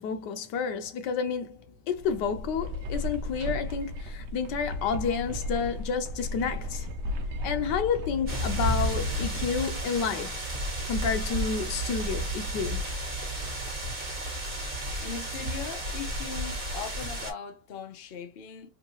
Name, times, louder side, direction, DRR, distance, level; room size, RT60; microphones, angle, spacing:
voice 1, 0.0-6.9 7.4-10.5 10.9-12.8, left 6 dB, 85° left, 1.4 m, -30 dB
sound 1, 1.9-10.4, left 1 dB, 70° right, 1.1 m, -35 dB
sound 2, 8.3-17.3, right 1 dB, 35° right, 1.7 m, -32 dB
voice 2, 15.0-18.7, left 6 dB, 50° left, 0.7 m, -39 dB
3.7 x 2.6 x 2.9 m
omnidirectional pair, 1.8 m